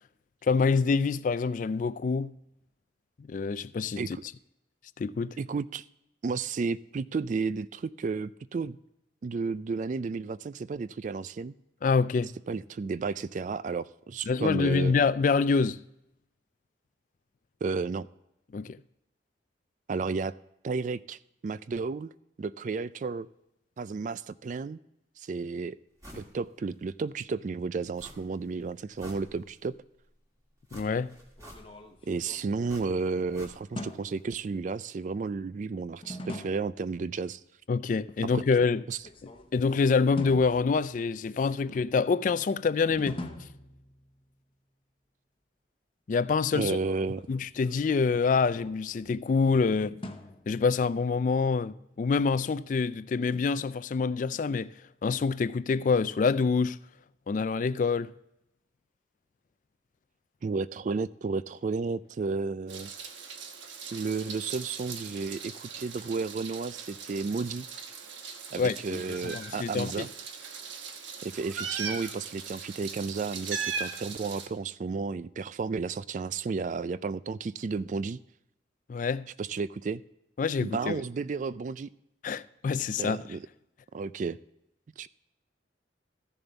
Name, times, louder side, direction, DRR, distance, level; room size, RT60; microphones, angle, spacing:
voice 1, 0.4-2.3 3.3-4.2 5.0-5.3 11.8-12.3 14.3-15.8 18.5-18.8 30.7-31.1 37.7-38.8 39.5-43.2 46.1-46.8 47.3-50.0 50.5-54.7 55.0-56.8 57.3-58.1 68.6-70.0 78.9-79.3 80.4-81.0 82.2-83.2, left 4 dB, 45° left, 0.3 m, -26 dB
voice 2, 5.4-5.8 6.2-8.8 9.2-11.5 12.5-15.0 17.6-18.1 19.9-20.3 20.6-22.1 22.4-23.3 23.8-24.8 25.2-25.8 26.2-29.7 32.1-37.4 38.3-38.4 38.9-39.0 46.5-47.2 60.4-62.9 63.9-67.7 68.5-70.1 71.2-78.2 79.4-80.0 80.6-81.9 83.0-83.4 83.9-84.4 85.0-85.1, right 4 dB, 40° right, 0.3 m, -32 dB
sound 1, 26.0-26.3 26.7-26.8 28.0-28.5 28.8-29.7 30.7-32.0 32.7-33.9 34.2-34.3, equal, 20° right, 2.2 m, -49 dB
sound 2, 31.4-33.1 33.8-34.4 36.0-36.9 38.9-39.7 40.2-41.3 42.9-44.3 46.7-49.2 50.0-51.0, left 1 dB, 30° left, 0.9 m, -43 dB
Meow, 62.7-74.5, right 5 dB, 85° right, 1.2 m, -39 dB
14.0 x 6.9 x 4.0 m
head